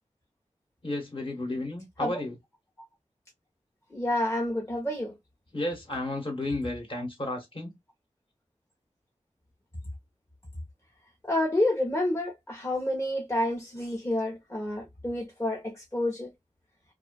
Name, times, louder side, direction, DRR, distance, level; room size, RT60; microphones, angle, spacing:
voice 1, 0.8-2.4 5.5-7.7, left 2 dB, 45° left, 1.1 m, -32 dB
voice 2, 3.9-5.1 11.2-16.3, left 1 dB, 20° left, 0.7 m, -29 dB
2.5 x 2.3 x 2.2 m
wide cardioid pair, 65°, 12 cm